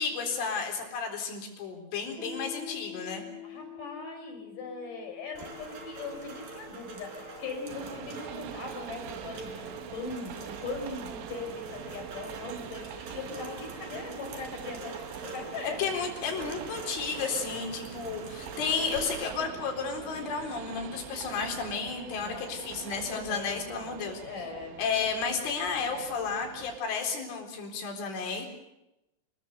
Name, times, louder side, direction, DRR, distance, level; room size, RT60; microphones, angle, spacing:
voice 1, 0.0-3.2 15.8-24.2 24.8-28.5, left 5 dB, 90° left, 2 dB, 6.5 m, -32 dB
Piano, 2.2-9.4, left 7 dB, 35° right, 4.0 m, -48 dB
voice 2, 3.4-15.8 22.2-22.6 23.0-24.8, left 3 dB, 45° left, 4 dB, 6.2 m, -40 dB
Rain, 5.3-19.3, right 3 dB, 50° right, 5.9 m, -44 dB
Train, 7.6-26.8, right 11 dB, 80° right, 3.3 m, -44 dB
28.0 x 21.5 x 6.8 m, 0.90 s
omnidirectional pair, 5.4 m